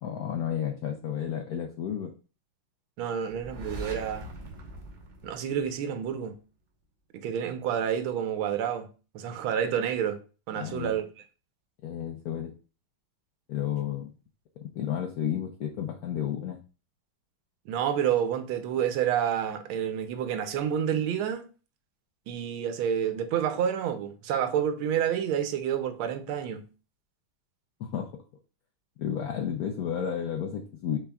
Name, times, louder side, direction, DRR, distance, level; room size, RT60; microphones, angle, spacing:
voice 1, 0.0-2.1 10.6-10.9 11.8-12.5 13.5-14.1 14.6-16.6 27.8-28.1 29.0-31.0, left 9 dB, 80° left, 0.8 m, -32 dB
voice 2, 3.0-4.3 5.2-6.4 7.1-8.9 9.1-10.2 10.5-11.1 17.7-21.4 22.3-26.6, right 9 dB, 80° right, 1.5 m, -29 dB
sound 1, 3.3-6.1, right 1 dB, 45° right, 0.6 m, -42 dB
6.1 x 3.5 x 2.3 m
omnidirectional pair, 2.3 m